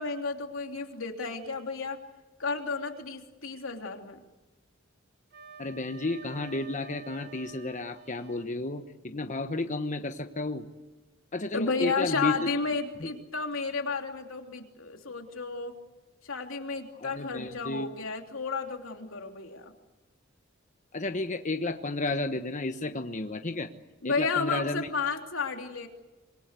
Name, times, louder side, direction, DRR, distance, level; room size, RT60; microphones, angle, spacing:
voice 1, 0.0-2.0 2.4-4.2 11.5-15.7 16.2-19.7 24.0-25.9, left 4 dB, 90° left, 3 dB, 3.2 m, -32 dB
Wind instrument woodwind instrument, 5.3-8.5, right 5 dB, 55° right, 3.6 m, -49 dB
voice 2, 5.6-10.7 11.3-12.3 13.0-13.1 17.0-17.9 20.9-23.7 24.0-24.9, left 2 dB, 40° left, 7 dB, 1.1 m, -32 dB
26.0 x 22.5 x 8.3 m, 1.2 s
head